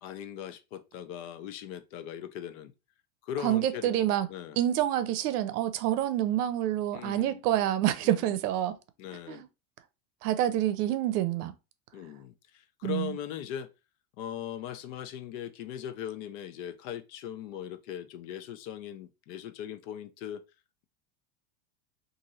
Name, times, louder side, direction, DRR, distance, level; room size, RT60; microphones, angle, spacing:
voice 1, 0.0-2.7 3.2-3.9 4.3-4.6 6.9-7.7 8.0-8.2 9.0-9.4 11.9-13.7 14.2-20.4, left 10 dB, 60° left, 0.5 m, -39 dB
voice 2, 3.4-4.3 4.6-8.8 9.3-9.5 10.2-11.5 12.8-13.2, right 12 dB, 80° right, 0.6 m, -27 dB
2.9 x 2.6 x 2.6 m
supercardioid pair, 145°, 45 cm